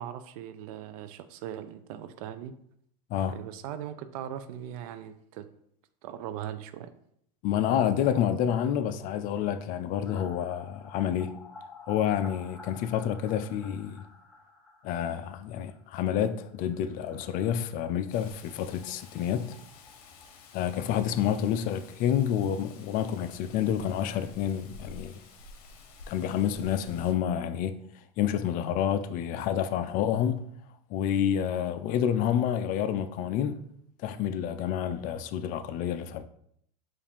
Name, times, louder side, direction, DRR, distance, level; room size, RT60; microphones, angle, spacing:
voice 1, 0.0-2.5 3.3-5.5 6.0-6.9, right 10 dB, 60° right, 0.4 m, -39 dB
voice 2, 7.4-11.3 11.9-14.0 14.8-19.5 20.5-25.2 26.1-27.8 28.2-30.4 30.9-33.6 34.0-36.2, left 9 dB, 45° left, 0.4 m, -28 dB
sound 1, 10.0-21.6 21.9-22.0 22.3-22.4 25.4-25.5 25.8-25.9 26.1-27.9 28.2-28.3, left 3 dB, ahead, 0.9 m, -53 dB
Rain, 18.1-27.1, left 3 dB, 65° left, 0.8 m, -51 dB
4.8 x 2.5 x 3.5 m
hypercardioid pair, 105°, 20 cm